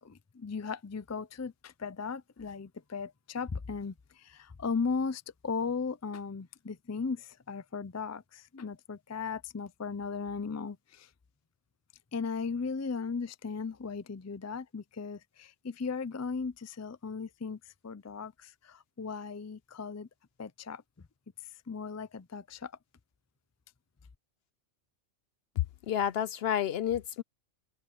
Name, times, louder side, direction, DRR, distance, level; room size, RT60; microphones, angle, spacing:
voice 1, 0.0-11.1 12.1-20.1 20.4-20.8 21.7-22.7, left 5 dB, 25° left, 0.3 m, -37 dB
voice 2, 25.9-27.2, left 9 dB, 65° left, 0.7 m, -30 dB
open air
omnidirectional pair, 1.3 m